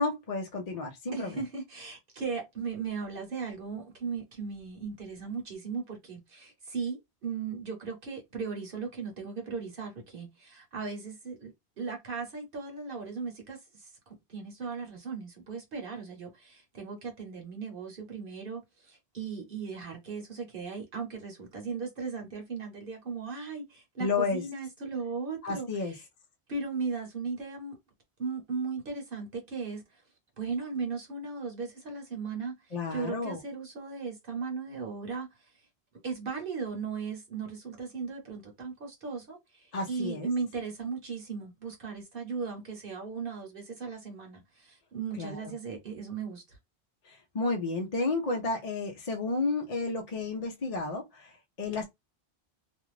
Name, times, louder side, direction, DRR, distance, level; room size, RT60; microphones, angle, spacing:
voice 1, 0.0-1.4 24.0-24.4 25.4-25.9 32.7-33.4 39.7-40.3 45.2-45.5 47.0-51.8, left 3 dB, 45° left, 0.6 m, -32 dB
voice 2, 1.1-11.5 11.8-26.0 26.5-27.8 28.2-30.0 30.4-35.5 36.0-46.6, right 5 dB, 60° right, 1.0 m, -37 dB
2.4 x 2.4 x 3.1 m
omnidirectional pair, 1.1 m